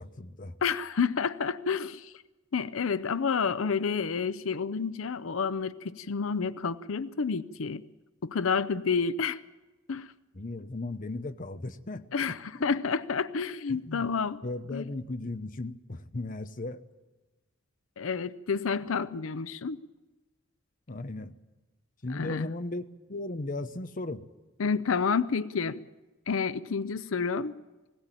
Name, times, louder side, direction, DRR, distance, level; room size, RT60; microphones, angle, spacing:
voice 1, 0.0-0.5 10.3-12.7 13.7-14.1 14.4-16.8 20.9-21.3 22.0-22.8 23.1-24.2, left 2 dB, 40° left, 0.8 m, -36 dB
voice 2, 0.6-2.1 2.5-7.8 8.2-9.4 9.9-10.1 12.1-14.4 14.7-14.9 18.0-19.8 22.1-22.5 24.6-25.8 26.3-27.5, left 5 dB, 85° left, 0.6 m, -29 dB
20.5 x 16.5 x 9.0 m
head